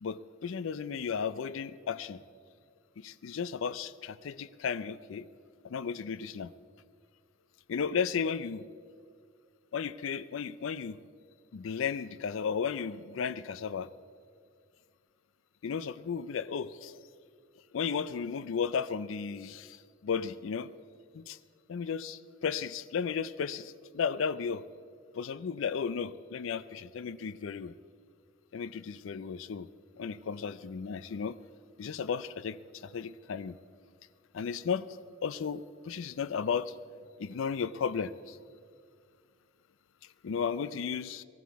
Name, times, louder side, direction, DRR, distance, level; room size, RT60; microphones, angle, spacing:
voice 1, 0.0-2.2 3.0-5.3 5.6-6.5 7.7-8.7 9.7-11.0 11.5-13.9 15.6-17.0 17.7-19.8 20.0-20.7 21.1-21.4 21.7-24.6 25.1-27.7 28.5-29.7 30.0-31.4 31.8-32.6 32.8-33.6 34.3-34.9 35.2-36.7 37.2-38.4 40.2-41.2, left 6 dB, 65° left, 16 dB, 0.4 m, -34 dB
18.5 x 14.5 x 4.7 m, 2.1 s
head